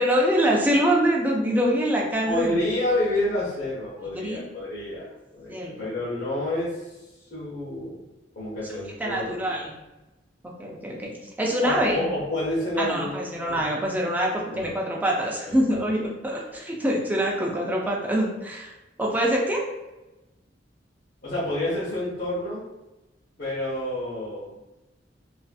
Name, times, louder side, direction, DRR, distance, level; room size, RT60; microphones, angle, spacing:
voice 1, 0.0-2.6 4.1-4.4 5.5-5.8 9.0-9.6 10.6-12.0 12.8-18.7 19.0-19.6, equal, 10° right, -2 dB, 0.4 m, -24 dB
voice 2, 2.3-5.0 5.3-6.9 7.3-8.0 8.4-9.6 11.6-13.6 14.5-14.7 15.5-15.8 21.2-22.6 23.4-24.6, left 1 dB, 50° left, -10 dB, 0.7 m, -29 dB
2.5 x 2.4 x 2.3 m, 1.0 s
head